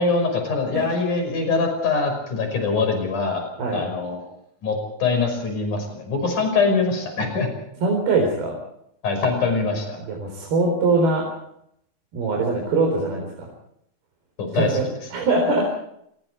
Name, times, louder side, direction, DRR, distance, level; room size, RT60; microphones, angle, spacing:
voice 1, 0.0-4.2 4.6-7.5 9.0-10.0 14.4-14.8, left 4 dB, 50° left, 5 dB, 7.0 m, -23 dB
voice 2, 7.8-8.6 10.1-11.3 12.1-13.5 14.5-14.8 15.1-15.7, right 3 dB, 75° right, 0 dB, 6.2 m, -22 dB
26.5 x 23.0 x 4.7 m, 0.74 s
omnidirectional pair, 4.5 m